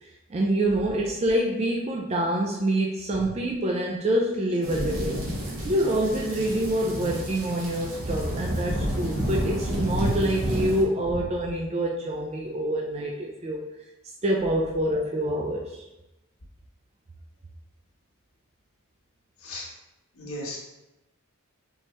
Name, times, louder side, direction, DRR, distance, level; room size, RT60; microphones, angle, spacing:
voice 1, 0.3-5.2 5.6-13.6 14.2-15.7, right 1 dB, 30° right, 0 dB, 0.4 m, -26 dB
sound 1, 4.6-10.8, right 1 dB, 90° right, 1.2 m, -30 dB
voice 2, 5.0-5.7 11.1-11.2 19.4-19.7 20.2-20.6, left 1 dB, 80° left, -3 dB, 1.1 m, -36 dB
4.4 x 3.0 x 3.0 m, 0.96 s
head